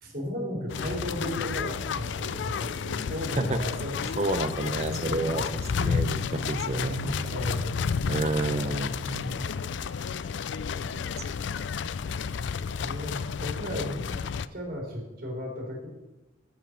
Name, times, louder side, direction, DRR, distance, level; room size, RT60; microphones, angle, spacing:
voice 1, 0.0-4.1 4.9-5.4 7.3-8.0 9.6-10.3 12.8-14.2 14.5-15.9, left 1 dB, 50° right, -1 dB, 3.4 m, -35 dB
sound 1, 0.7-14.5, left 6 dB, 65° left, 0.4 m, -31 dB
voice 2, 4.2-5.4 5.7-7.3 8.1-9.5 10.9-11.1, right 2 dB, 35° right, 9 dB, 0.7 m, -30 dB
8.2 x 7.6 x 6.3 m, 1.1 s
head